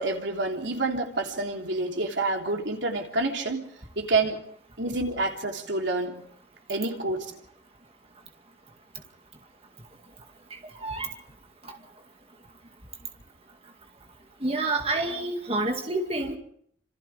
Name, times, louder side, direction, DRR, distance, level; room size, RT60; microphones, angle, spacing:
voice 1, 0.0-3.6 3.9-4.4 4.8-6.1 6.7-7.3, right 2 dB, 85° right, 3.4 m, -28 dB
voice 2, 14.4-16.4, right 2 dB, 30° right, 2.2 m, -28 dB
30.0 x 26.5 x 3.5 m
head